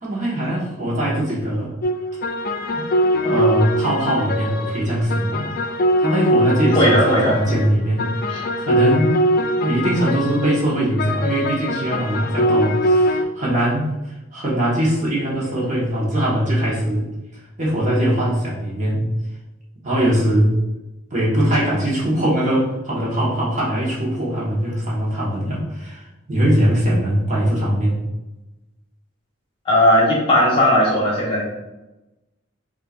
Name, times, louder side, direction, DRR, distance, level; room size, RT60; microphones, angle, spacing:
voice 1, 0.0-1.7 2.7-2.8 3.2-5.5 6.0-8.1 8.6-9.2 9.6-17.1 17.6-19.1 19.8-20.6 21.1-28.0, right 1 dB, 40° right, -6 dB, 1.4 m, -21 dB
sound 1, 1.8-13.2, equal, 45° left, 0.4 m, -22 dB
voice 2, 6.7-7.3 8.3-8.4 29.6-31.4, equal, 25° left, -5 dB, 1.3 m, -16 dB
5.5 x 2.8 x 2.5 m, 1.0 s
head